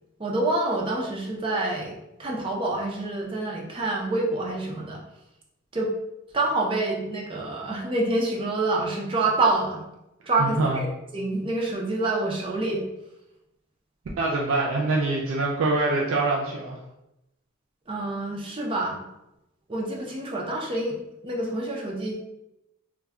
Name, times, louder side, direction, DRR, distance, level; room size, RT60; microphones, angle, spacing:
voice 1, 0.2-5.0 5.7-5.9 6.3-9.8 10.3-10.9 11.1-12.8 17.9-19.0 19.7-21.0 21.2-22.1, right 2 dB, 25° right, -2 dB, 0.4 m, -27 dB
voice 2, 10.4-10.8 14.2-16.8, right 2 dB, 90° right, -2 dB, 0.4 m, -24 dB
2.2 x 2.1 x 3.5 m, 0.89 s
head